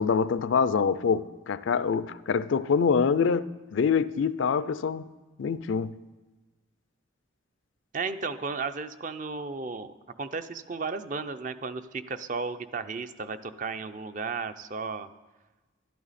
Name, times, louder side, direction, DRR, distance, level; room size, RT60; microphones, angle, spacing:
voice 1, 0.0-5.1 5.4-5.9, left 6 dB, 75° left, 0.4 m, -25 dB
voice 2, 7.9-15.1, right 4 dB, 40° right, 0.5 m, -34 dB
12.5 x 11.5 x 4.2 m
head